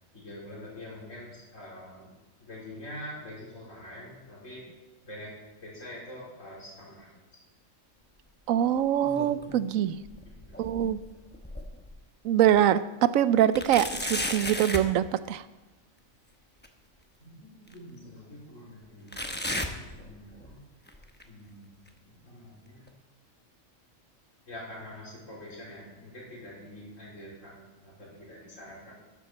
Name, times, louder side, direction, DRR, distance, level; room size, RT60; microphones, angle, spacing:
voice 1, 0.1-2.1 2.4-4.6 5.0-5.3 5.6-7.1 10.3-10.8 17.2-20.6 21.2-21.6 22.2-22.9 24.5-28.9, left 1 dB, 70° left, -6 dB, 4.2 m, -45 dB
voice 2, 8.5-10.0 10.6-11.0 12.2-15.4, right 11 dB, 90° right, 15 dB, 1.0 m, -24 dB
sound 1, 8.8-9.7 10.1-12.0 12.5-12.6 13.5-14.9 16.6-16.7 17.7-17.8 19.1-20.5 20.9-21.2 21.9-22.0 22.9-23.0, left 1 dB, 10° left, 0.7 m, -35 dB
12.5 x 12.0 x 4.1 m, 1.1 s
omnidirectional pair, 1.4 m